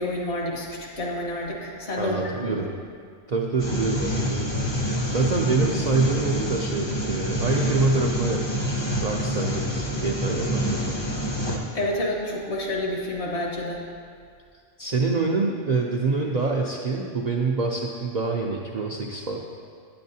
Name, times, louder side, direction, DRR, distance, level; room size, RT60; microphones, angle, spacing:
voice 1, 0.0-2.7 11.7-13.9, left 1 dB, 65° left, -2 dB, 1.5 m, -29 dB
voice 2, 2.0-2.7 3.3-11.0 14.8-19.4, right 3 dB, 60° right, -1 dB, 0.4 m, -26 dB
sound 1, 3.6-11.6, equal, 30° left, 0.6 m, -27 dB
9.1 x 7.8 x 2.7 m, 2.2 s
omnidirectional pair, 1.3 m